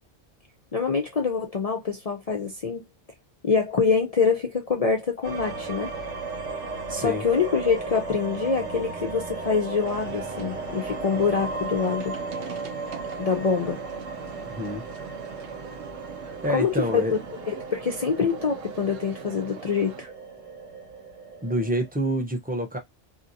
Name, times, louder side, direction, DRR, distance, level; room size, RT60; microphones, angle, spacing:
voice 1, 0.7-2.8 3.4-5.9 6.9-12.1 13.2-13.8 16.5-17.0 17.5-20.1, left 5 dB, 50° left, 0.4 m, -25 dB
sound 1, 5.2-21.9, right 3 dB, 90° right, 1.4 m, -36 dB
voice 2, 6.9-7.2 14.5-14.8 16.4-17.2 21.4-22.8, right 1 dB, 10° right, 0.5 m, -27 dB
sound 2, 9.8-20.0, right 9 dB, 60° right, 0.7 m, -42 dB
2.8 x 2.7 x 2.6 m
omnidirectional pair, 1.3 m